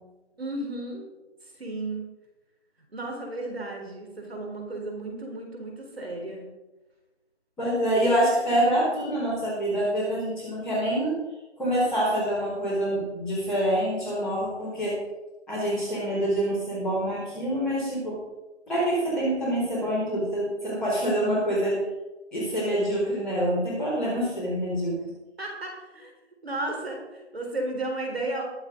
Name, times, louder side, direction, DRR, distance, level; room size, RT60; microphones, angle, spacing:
voice 1, 0.4-1.1 1.4-2.1 2.9-6.5 25.4-26.1 26.4-28.4, right 2 dB, 60° right, 1 dB, 4.1 m, -34 dB
voice 2, 7.6-11.2 11.6-15.0 15.5-18.2 18.7-21.8 22.3-25.0, right 1 dB, ahead, -15 dB, 1.9 m, -26 dB
21.0 x 7.3 x 3.9 m, 1.1 s
figure-of-eight pair, 170°, 34 cm